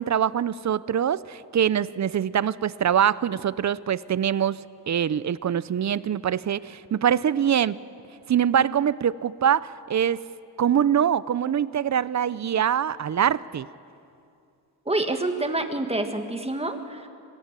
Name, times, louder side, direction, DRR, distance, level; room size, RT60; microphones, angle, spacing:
voice 1, 0.0-7.8 8.3-10.2 10.6-13.7, right 9 dB, 45° right, 18 dB, 0.5 m, -24 dB
voice 2, 14.9-17.1, right 2 dB, 15° right, 6 dB, 1.8 m, -27 dB
25.5 x 18.0 x 9.0 m, 2.5 s
wide cardioid pair, 130°, 42 cm